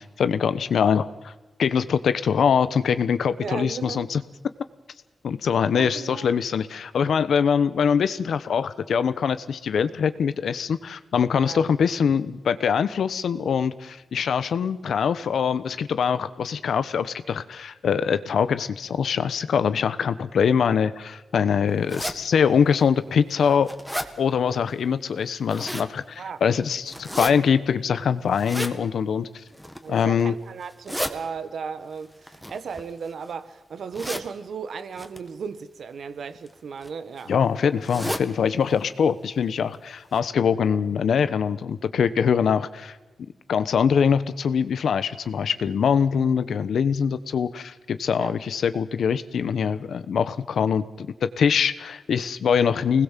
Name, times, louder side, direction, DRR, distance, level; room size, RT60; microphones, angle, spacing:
voice 1, 0.0-1.3 1.6-4.2 5.2-23.7 24.2-29.3 29.9-30.3 37.3-43.0 43.5-53.0, left 7 dB, 90° left, 1.1 m, -23 dB
voice 2, 3.4-4.1 5.7-6.3 11.4-11.6 26.2-26.4 29.8-37.4 48.2-48.3, right 6 dB, 80° right, 1.3 m, -35 dB
sound 1, 21.9-22.2 22.8-22.9 23.3-24.1 25.2-25.9 26.9-27.3 28.3-28.7 29.5-29.9 30.6-31.1 32.2-33.2 33.9-34.3 35.0-35.2 36.2-36.5 36.8-36.9 37.2-37.3 37.8-38.3 38.7-38.8 39.1-39.2 39.7-39.8 40.1-40.2, equal, ahead, 1.8 m, -32 dB
25.5 x 20.0 x 7.5 m
wide cardioid pair, 115°, 0 cm